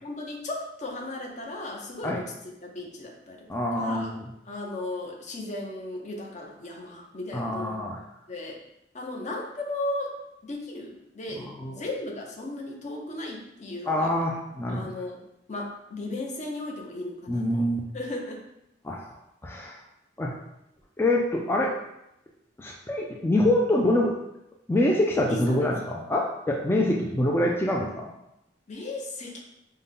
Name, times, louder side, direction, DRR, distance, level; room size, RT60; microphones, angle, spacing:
voice 1, 0.0-2.3 2.6-4.1 4.5-7.8 8.3-8.6 8.9-10.1 10.4-14.3 14.7-15.2 15.5-17.6 17.9-18.4 25.3-25.7 28.7-29.4, left 2 dB, 40° left, 0 dB, 0.8 m, -36 dB
voice 2, 3.5-4.2 7.3-8.0 11.6-11.8 13.9-14.9 17.3-17.8 18.8-19.2 19.4-19.8 20.2-20.4 21.0-21.7 22.6-24.1 24.7-28.0, left 1 dB, 15° left, -2 dB, 0.3 m, -25 dB
5.3 x 2.2 x 3.6 m, 0.84 s
head